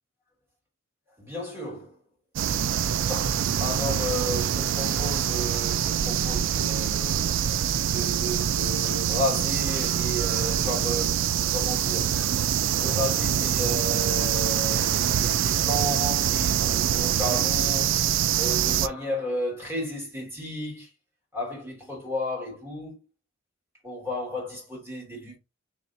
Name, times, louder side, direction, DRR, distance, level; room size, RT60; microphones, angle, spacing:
voice 1, 1.2-2.0 3.1-3.3 3.6-7.4 7.9-12.2 12.8-17.9 18.3-20.9 21.3-23.0 23.8-25.4, left 1 dB, 10° right, 1.8 m, -33 dB
sound 1, 2.4-18.9, right 9 dB, 65° right, 0.3 m, -25 dB
4.1 x 3.1 x 2.5 m
head